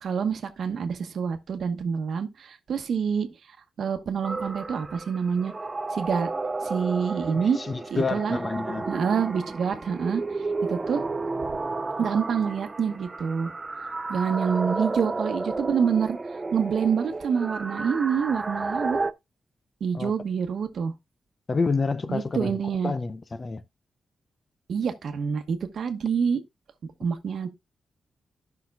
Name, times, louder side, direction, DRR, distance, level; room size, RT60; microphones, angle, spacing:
voice 1, 0.0-3.3 3.8-5.5 5.9-6.3 6.6-7.6 7.9-8.4 8.9-10.2 10.7-11.0 12.0-13.5 14.1-16.2 16.5-19.0 19.8-20.9 22.1-22.9 24.7-26.4 27.0-27.5, right 6 dB, 65° right, 1.0 m, -27 dB
sound 1, 4.2-19.1, right 3 dB, 25° right, 0.4 m, -32 dB
voice 2, 7.3-8.9 19.9-20.1 21.5-23.6, left 4 dB, 30° left, 0.5 m, -29 dB
14.5 x 5.8 x 2.2 m
wide cardioid pair, 150°, 0 cm